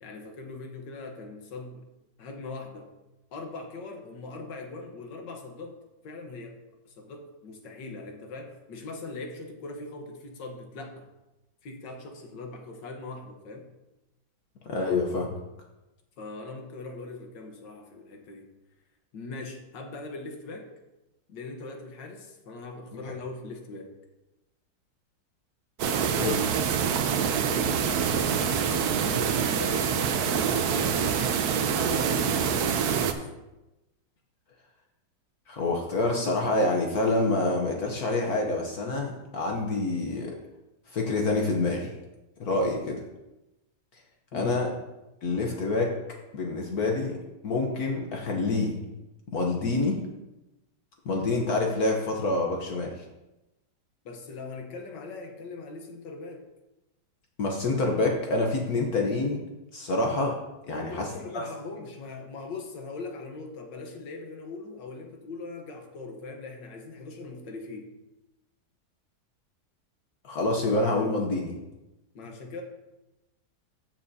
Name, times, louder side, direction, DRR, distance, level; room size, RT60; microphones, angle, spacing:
voice 1, 0.0-1.9 2.2-2.9 3.3-5.8 6.0-6.6 6.9-11.1 11.6-13.7 16.2-18.5 19.1-20.7 21.3-23.9 27.6-31.2 31.6-33.3 42.5-42.7 44.3-44.7 54.1-56.4 60.7-67.9 72.2-72.6, left 3 dB, 85° left, 3 dB, 1.8 m, -40 dB
voice 2, 14.7-15.3 23.1-23.2 26.1-26.8 35.5-40.3 40.9-41.9 42.4-43.0 44.3-44.7 45.2-45.9 46.3-47.2 47.4-48.8 49.3-50.0 51.0-53.0 57.4-59.4 59.7-60.4 60.7-61.1 61.3-61.5 70.2-71.6, left 2 dB, 60° left, 1 dB, 1.4 m, -27 dB
sound 1, 25.8-33.1, right 7 dB, 65° right, 1.1 m, -26 dB
14.5 x 6.0 x 2.7 m, 1.0 s
omnidirectional pair, 1.9 m